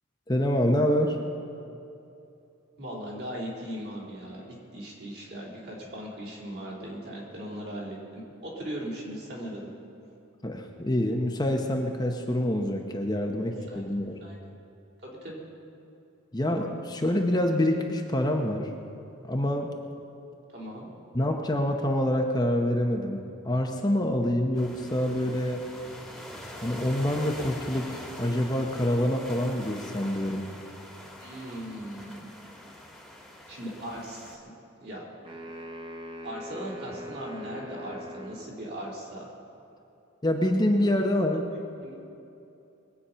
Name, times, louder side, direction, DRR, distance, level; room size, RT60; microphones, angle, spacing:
voice 1, 0.3-1.2 10.4-14.2 16.3-18.7 19.2-19.7 21.1-25.6 26.6-30.5 40.2-41.4, left 1 dB, 20° left, 2 dB, 0.8 m, -26 dB
voice 2, 2.8-9.7 13.5-13.8 14.2-14.4 15.0-15.4 20.5-20.9 31.2-32.3 33.5-34.4 34.8-35.0 36.2-39.3 41.8-42.0, equal, 50° right, -4 dB, 3.6 m, -38 dB
sound 1, 24.5-34.4, left 1 dB, ahead, 1.6 m, -44 dB
sound 2, 35.2-38.6, equal, 25° right, 1.4 m, -41 dB
21.5 x 8.3 x 5.7 m, 2.8 s
head